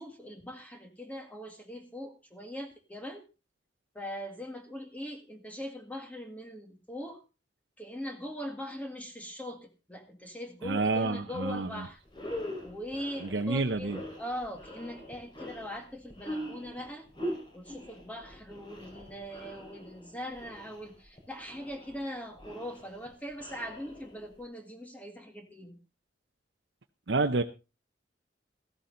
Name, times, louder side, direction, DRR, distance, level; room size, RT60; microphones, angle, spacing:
voice 1, 0.0-3.3 3.9-7.2 7.8-12.0 12.6-17.1 17.5-25.8, equal, 10° left, 4 dB, 2.0 m, -41 dB
voice 2, 10.6-11.7 13.2-14.0 27.1-27.4, right 3 dB, 80° right, 5 dB, 0.9 m, -28 dB
sound 1, 11.6-11.7 12.1-24.4, equal, 25° left, 4.9 m, -43 dB
14.5 x 13.0 x 3.9 m, 0.31 s
head